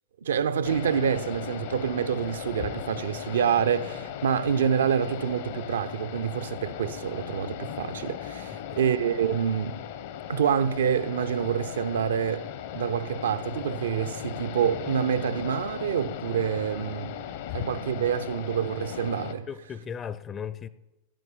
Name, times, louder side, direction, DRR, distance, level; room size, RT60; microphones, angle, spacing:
voice 1, 0.2-9.8 10.3-12.5 12.7-17.1 17.5-19.5, right 8 dB, 65° right, 0.8 m, -27 dB
sound 1, 0.6-19.3, left 10 dB, 55° left, 1.4 m, -37 dB
voice 2, 8.5-8.9 17.5-17.6 19.5-20.7, left 7 dB, 25° left, 0.8 m, -37 dB
13.0 x 11.0 x 9.7 m
figure-of-eight pair, 90°, 0 cm